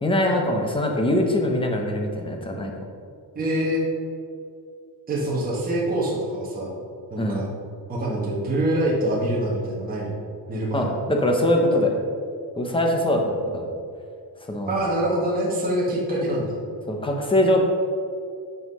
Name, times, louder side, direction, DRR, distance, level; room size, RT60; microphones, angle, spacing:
voice 1, 0.0-2.7 7.2-7.4 10.7-12.0 12.6-13.7 14.5-14.8 16.9-17.6, left 1 dB, 10° left, 2 dB, 1.0 m, -22 dB
voice 2, 3.3-3.8 5.1-6.8 7.1-7.5 7.9-10.2 10.5-11.0 14.6-16.6, right 1 dB, 20° right, -6 dB, 1.5 m, -25 dB
9.2 x 5.8 x 5.5 m, 2.3 s
cardioid pair, 170°, 44 cm